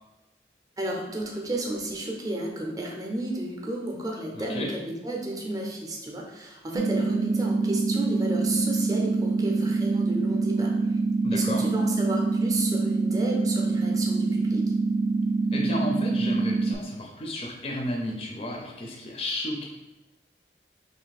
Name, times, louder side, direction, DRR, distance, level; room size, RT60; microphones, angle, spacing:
voice 1, 0.8-11.0 11.3-14.6, right 1 dB, 20° right, 0 dB, 0.5 m, -32 dB
voice 2, 4.3-4.7 11.2-11.6 15.5-19.6, left 1 dB, 35° left, -1 dB, 0.4 m, -32 dB
sound 1, 6.7-16.7, right 3 dB, 85° right, 0.3 m, -25 dB
3.2 x 2.6 x 4.0 m, 1.1 s
head